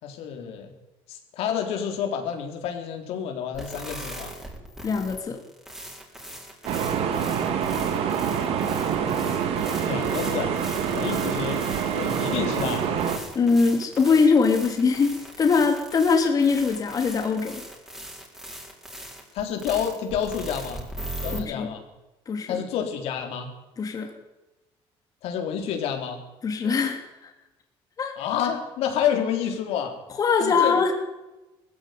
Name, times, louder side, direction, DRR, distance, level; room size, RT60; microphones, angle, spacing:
voice 1, 0.0-0.7 1.1-4.3 9.9-10.5 10.9-11.6 11.9-12.9 19.3-20.8 21.2-21.8 22.5-23.5 25.2-26.2 28.2-30.0 30.4-30.8, left 8 dB, 80° left, 4 dB, 3.9 m, -29 dB
sound 1, 3.5-21.4, right 1 dB, 5° right, 4.7 m, -40 dB
voice 2, 4.8-5.4 13.3-15.1 15.4-17.6 21.3-21.7 22.3-22.6 23.8-24.1 26.4-27.3 28.0-28.1 30.2-30.9, left 5 dB, 35° left, 4 dB, 2.8 m, -22 dB
sound 2, 6.6-13.2, right 7 dB, 70° right, 3.0 m, -26 dB
18.5 x 15.5 x 9.4 m, 1.0 s
cardioid pair, 125°, 10 cm